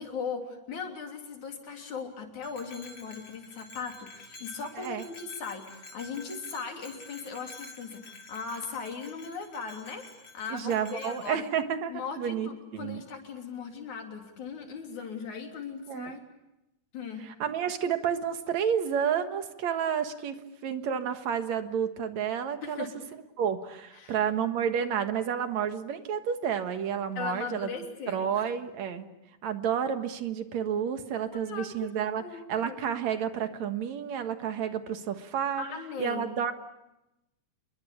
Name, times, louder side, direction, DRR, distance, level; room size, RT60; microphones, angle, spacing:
voice 1, 0.0-10.1 10.3-11.5 11.9-16.2 16.9-17.2 22.6-22.9 24.0-24.2 27.2-28.4 31.3-31.9 32.2-32.8 35.6-36.3, left 5 dB, 75° left, 3 dB, 4.8 m, -38 dB
Bell, 2.4-11.4, left 3 dB, 45° left, 3.7 m, -49 dB
voice 2, 10.5-13.0 15.9-16.2 17.2-22.9 23.4-27.7 28.1-29.1 29.4-32.2 32.5-35.6 36.0-36.5, right 8 dB, 70° right, 9 dB, 2.7 m, -30 dB
28.0 x 22.5 x 8.6 m, 0.92 s
omnidirectional pair, 3.4 m